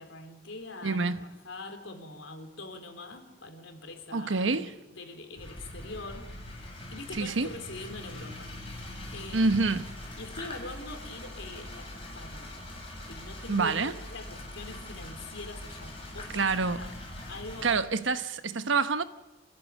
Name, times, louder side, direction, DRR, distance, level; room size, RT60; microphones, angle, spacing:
voice 1, 0.0-6.3 6.9-8.5 9.1-9.7 10.2-12.6 13.1-16.5 16.7-16.9 17.3-17.8, left 2 dB, 80° left, 3.6 m, -43 dB
voice 2, 0.8-1.3 4.1-4.8 7.1-7.5 9.3-9.9 13.5-13.9 16.3-16.8 17.6-19.0, right 4 dB, 80° right, 1.1 m, -27 dB
sound 1, 5.4-17.7, left 1 dB, 30° left, 6.6 m, -42 dB
27.0 x 15.0 x 9.5 m
head